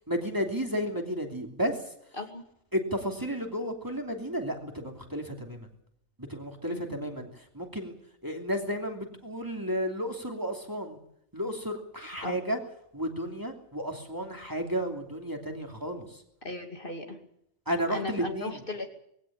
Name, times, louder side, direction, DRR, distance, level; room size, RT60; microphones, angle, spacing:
voice 1, 0.1-1.8 2.7-5.7 6.3-7.3 7.5-7.9 8.2-11.0 11.3-12.6 12.9-16.1 17.7-18.6, equal, 15° right, 2 dB, 2.9 m, -32 dB
voice 2, 6.7-7.0 12.2-12.3 16.4-17.2 17.9-18.9, left 2 dB, 50° left, 4 dB, 2.8 m, -37 dB
20.5 x 17.0 x 8.7 m, 0.73 s
omnidirectional pair, 1.2 m